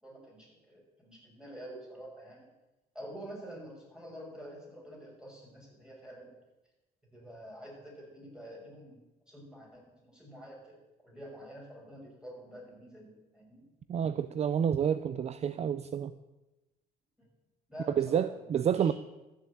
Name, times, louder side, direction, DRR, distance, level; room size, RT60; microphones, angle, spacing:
voice 1, 0.0-2.5 2.9-6.3 7.1-9.0 9.3-10.8 11.0-13.6 17.2-17.3 17.7-18.4 18.8-18.9, equal, 5° right, -2 dB, 6.3 m, -48 dB
voice 2, 13.9-16.1 18.0-18.9, right 8 dB, 40° right, 13 dB, 0.5 m, -29 dB
13.5 x 7.6 x 8.5 m, 1.0 s
cardioid pair, 110°, 17 cm